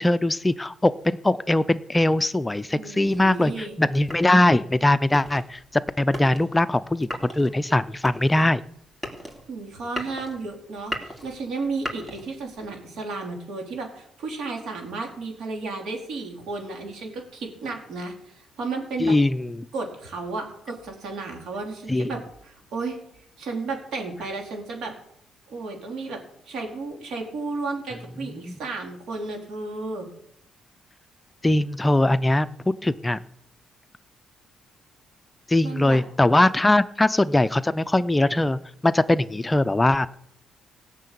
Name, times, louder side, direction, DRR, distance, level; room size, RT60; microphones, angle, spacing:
voice 1, 0.0-8.6 19.0-19.7 21.9-22.1 28.5-28.6 31.4-32.5 32.8-33.2 35.5-40.1, left 1 dB, 15° left, 13 dB, 0.5 m, -21 dB
voice 2, 2.7-3.8 9.5-19.2 19.7-23.0 23.4-25.0 25.5-26.2 26.5-30.1 35.6-36.0, right 3 dB, 75° right, 2 dB, 3.8 m, -33 dB
sound 1, 3.0-12.7, equal, 15° right, 3.3 m, -39 dB
17.0 x 6.6 x 8.5 m, 0.74 s
cardioid pair, 90°, 0 cm